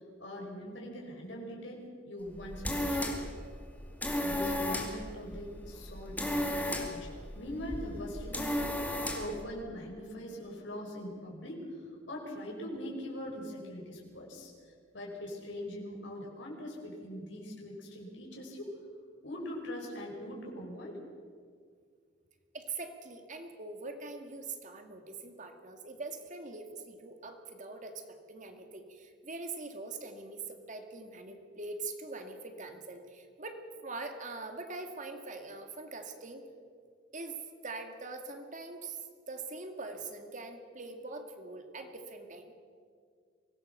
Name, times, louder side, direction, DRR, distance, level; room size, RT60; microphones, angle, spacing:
voice 1, 0.2-3.2 4.2-18.7 19.2-21.0, equal, 75° left, -1 dB, 5.1 m, -42 dB
sound 1, 2.3-9.4, left 1 dB, 10° left, 2.7 m, -35 dB
voice 2, 22.5-36.4 37.1-39.0 39.3-42.5, right 3 dB, 45° right, 5 dB, 2.2 m, -43 dB
24.5 x 17.0 x 6.9 m, 2.1 s
head